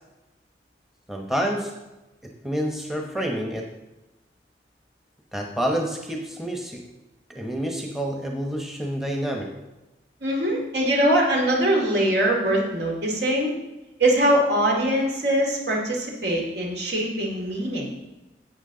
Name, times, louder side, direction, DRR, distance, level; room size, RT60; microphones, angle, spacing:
voice 1, 1.1-1.7 2.2-3.7 5.3-6.8 7.3-9.5, equal, ahead, 1 dB, 0.9 m, -28 dB
voice 2, 10.2-13.5 14.0-17.9, right 1 dB, 70° right, -1 dB, 2.5 m, -22 dB
11.0 x 8.1 x 3.8 m, 1.0 s
head